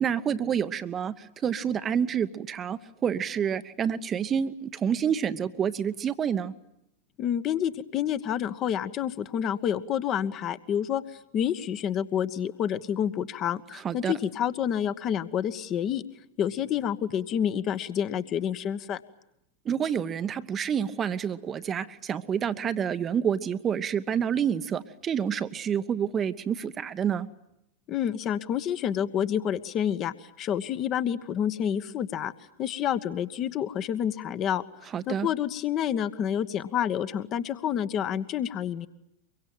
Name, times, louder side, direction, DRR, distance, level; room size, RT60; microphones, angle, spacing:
voice 1, 0.0-6.5 13.7-14.1 19.6-27.3 34.9-35.3, right 8 dB, 25° right, 12 dB, 1.0 m, -28 dB
voice 2, 7.2-11.0 11.3-16.0 16.4-19.0 27.9-30.1 30.4-32.3 32.6-38.9, left 9 dB, 35° left, 12 dB, 1.3 m, -28 dB
24.0 x 23.5 x 9.1 m, 0.80 s
figure-of-eight pair, 90°, 0 cm